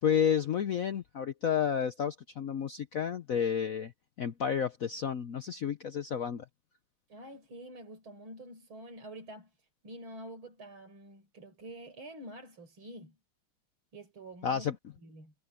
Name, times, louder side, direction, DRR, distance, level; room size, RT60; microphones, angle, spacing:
voice 1, 0.0-3.9 4.2-6.4 14.4-14.8, left 8 dB, 70° left, 0.8 m, -31 dB
voice 2, 7.1-9.5 9.8-13.2 13.9-14.7 15.0-15.3, right 1 dB, 65° right, 6.3 m, -47 dB
omnidirectional pair, 2.4 m